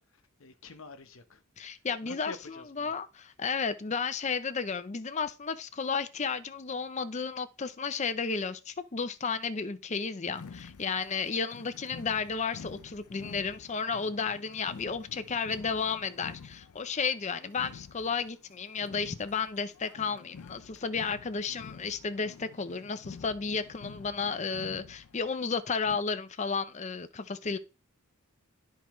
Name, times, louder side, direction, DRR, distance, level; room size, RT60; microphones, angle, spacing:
voice 1, 0.0-1.4 2.0-2.9, left 3 dB, 65° left, 1.0 m, -48 dB
voice 2, 1.6-2.3 2.8-27.6, left 5 dB, 30° left, 0.5 m, -33 dB
sound 1, 10.4-26.0, left 5 dB, 80° left, 0.5 m, -49 dB
12.0 x 4.7 x 3.1 m
head